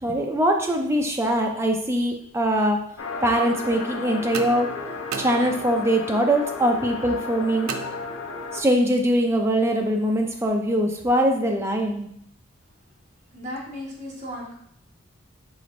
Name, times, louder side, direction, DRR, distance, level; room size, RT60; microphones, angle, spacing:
voice 1, 0.0-2.8 3.2-4.7 5.2-7.7 8.5-12.1, right 1 dB, 15° right, 2 dB, 0.4 m, -22 dB
sound 1, 3.0-8.6, left 3 dB, 75° left, 0.7 m, -33 dB
sound 2, 4.3-6.0 7.7-8.6, right 6 dB, 85° right, 0.4 m, -36 dB
voice 2, 13.3-14.5, left 1 dB, 35° right, -4 dB, 1.3 m, -35 dB
4.9 x 4.1 x 2.5 m, 0.70 s
head